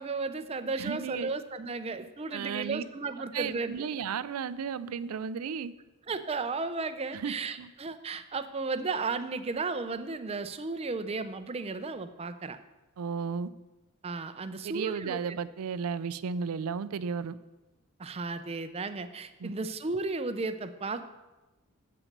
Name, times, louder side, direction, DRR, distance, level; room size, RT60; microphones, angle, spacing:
voice 1, 0.0-3.9 6.1-12.6 14.0-15.2 18.0-21.0, right 3 dB, 25° right, 10 dB, 0.5 m, -34 dB
voice 2, 0.8-1.3 2.3-2.8 3.3-5.7 7.1-7.7 13.0-13.5 14.6-17.4 19.4-19.5, right 6 dB, 85° right, 16 dB, 0.4 m, -34 dB
7.9 x 6.0 x 6.5 m, 1.1 s
head